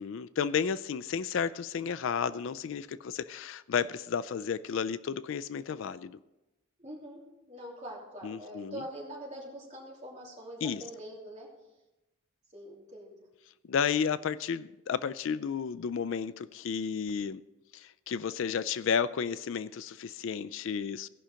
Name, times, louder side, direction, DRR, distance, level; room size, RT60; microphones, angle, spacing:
voice 1, 0.0-6.2 8.2-8.8 10.6-10.8 13.7-17.4 17.7-21.1, left 6 dB, 65° left, 15 dB, 0.3 m, -32 dB
voice 2, 6.8-11.5 12.5-13.2, right 1 dB, 35° right, -4 dB, 3.1 m, -44 dB
17.0 x 5.7 x 5.1 m, 0.98 s
head